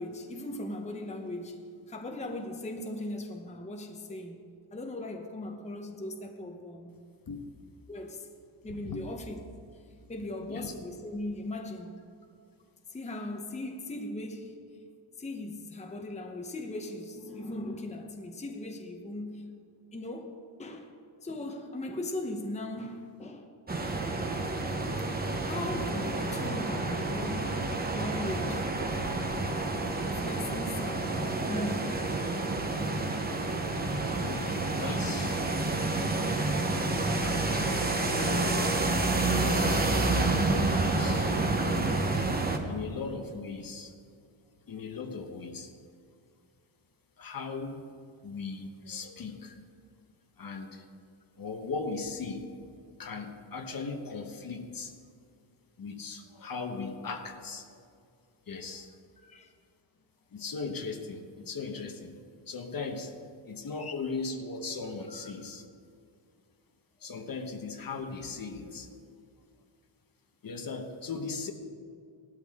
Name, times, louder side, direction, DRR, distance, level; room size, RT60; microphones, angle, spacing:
voice 1, 0.0-1.6 1.9-7.0 7.9-8.3 8.6-9.4 10.1-12.0 12.9-14.6 15.2-19.4 19.9-20.9 21.2-23.5 23.8-24.0 25.0-28.6 29.9-32.0 59.2-59.5 63.8-64.2 65.1-65.3, left 1 dB, 15° left, 0.9 m, -39 dB
sound 1, 23.7-42.6, right 2 dB, 20° right, 1.0 m, -29 dB
voice 2, 34.3-35.4 37.0-37.9 38.1-38.7 39.2-39.9 40.6-41.3 42.7-43.9 44.7-45.7 47.2-47.8 48.2-49.6 50.4-50.8 51.4-52.5 53.0-54.9 55.8-57.8 58.5-58.9 60.3-62.1 62.5-63.1 63.5-65.7 67.0-68.9 70.4-71.5, left 4 dB, 45° left, 1.2 m, -38 dB
17.5 x 12.5 x 3.7 m
wide cardioid pair, 135°, 50 cm